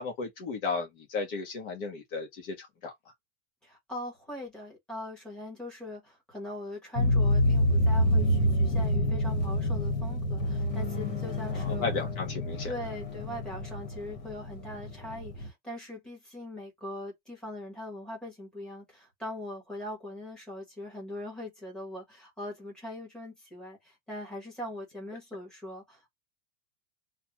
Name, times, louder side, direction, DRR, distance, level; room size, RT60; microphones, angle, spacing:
voice 1, 0.0-2.9 11.5-12.7, left 4 dB, 45° left, 0.9 m, -34 dB
voice 2, 3.6-11.9 12.6-26.1, left 1 dB, ahead, 1.1 m, -41 dB
sound 1, 7.0-15.5, left 1 dB, 65° left, 1.4 m, -27 dB
3.2 x 2.2 x 3.0 m
supercardioid pair, 175°, 37 cm